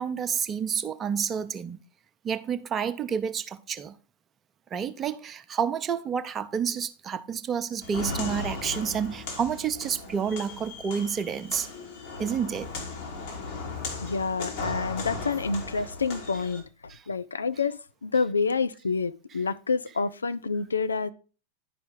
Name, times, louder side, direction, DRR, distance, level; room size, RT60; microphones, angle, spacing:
voice 1, 0.0-1.8 2.2-4.0 4.7-11.7 12.2-12.7 14.6-14.7 16.9-17.0, right 7 dB, 25° right, 0.6 m, -29 dB
Walk footsteps, 7.8-16.6, left 3 dB, 55° left, 2.7 m, -37 dB
voice 2, 14.0-16.6 17.1-21.1, left 4 dB, 75° left, 0.4 m, -28 dB
10.5 x 5.1 x 3.8 m
figure-of-eight pair, 90°, 0 cm